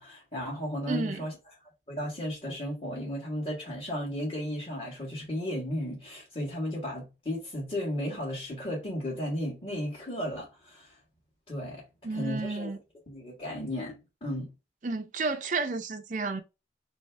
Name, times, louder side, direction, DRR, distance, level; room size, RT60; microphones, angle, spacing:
voice 1, 0.0-1.3 1.9-10.9 11.5-12.8 13.1-14.5, equal, 30° left, 1.7 m, -34 dB
voice 2, 0.9-1.2 12.0-12.8 14.8-16.4, right 3 dB, 45° right, 0.5 m, -31 dB
3.4 x 3.1 x 4.5 m
head